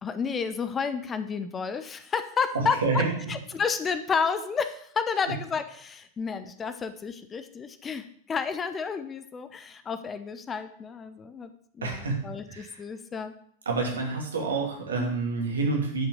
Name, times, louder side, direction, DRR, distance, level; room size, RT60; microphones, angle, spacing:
voice 1, 0.0-13.3 15.0-15.2, left 5 dB, 20° left, 10 dB, 0.8 m, -31 dB
voice 2, 2.5-3.1 11.8-12.7 13.7-16.1, right 3 dB, 70° right, 1 dB, 2.6 m, -28 dB
11.0 x 6.0 x 6.4 m, 0.65 s
figure-of-eight pair, 90°, 0 cm